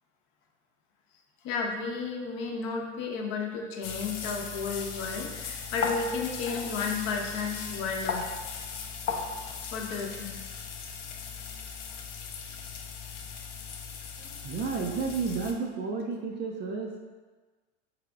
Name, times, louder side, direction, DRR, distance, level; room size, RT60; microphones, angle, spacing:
voice 1, 1.4-8.3 9.7-10.4, left 5 dB, 50° left, 0 dB, 0.8 m, -33 dB
sound 1, 3.8-15.5, left 6 dB, 85° left, 0.6 m, -37 dB
voice 2, 14.2-17.0, right 4 dB, 30° right, 1 dB, 0.4 m, -32 dB
4.8 x 3.3 x 2.3 m, 1.3 s
hypercardioid pair, 95°, 35 cm